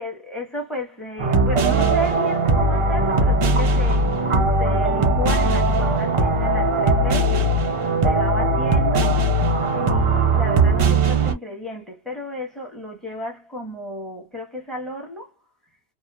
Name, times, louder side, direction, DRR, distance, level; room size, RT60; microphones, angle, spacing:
voice 1, 0.0-9.2 9.7-15.3, left 1 dB, ahead, 1.0 m, -33 dB
sound 1, 1.2-11.3, right 2 dB, 50° right, 0.4 m, -19 dB
Mallet percussion, 4.8-7.4, right 15 dB, 70° right, 0.8 m, -39 dB
2.8 x 2.2 x 2.3 m
omnidirectional pair, 1.1 m